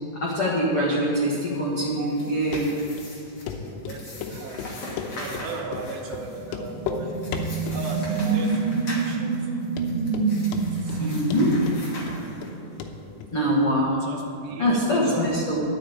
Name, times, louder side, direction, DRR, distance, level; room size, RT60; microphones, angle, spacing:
voice 1, 0.2-2.7 11.0-11.6 13.3-13.9 14.6-15.6, equal, 70° left, -6 dB, 1.3 m, -23 dB
sound 1, 1.9-12.8, left 1 dB, 40° left, 2.6 m, -41 dB
voice 2, 2.0-2.4 3.6-4.6 5.2-7.2 7.7-9.6 10.7-11.2 13.8-15.5, right 4 dB, 80° right, 2 dB, 2.7 m, -37 dB
Run, 2.5-2.6 3.0-3.1 3.5-3.6 3.9-5.5 5.7-5.9 6.1-6.2 6.5-7.0 7.3-7.8 8.2-8.6 8.9-9.0 9.4-9.5 9.8-10.3 10.5-11.0 11.3-12.5 12.8-12.9 13.2-13.3, left 7 dB, 85° left, 3.3 m, -34 dB
sound 2, 6.2-12.7, right 4 dB, 65° right, 3.0 m, -27 dB
12.0 x 6.5 x 8.8 m, 2.8 s
omnidirectional pair, 5.6 m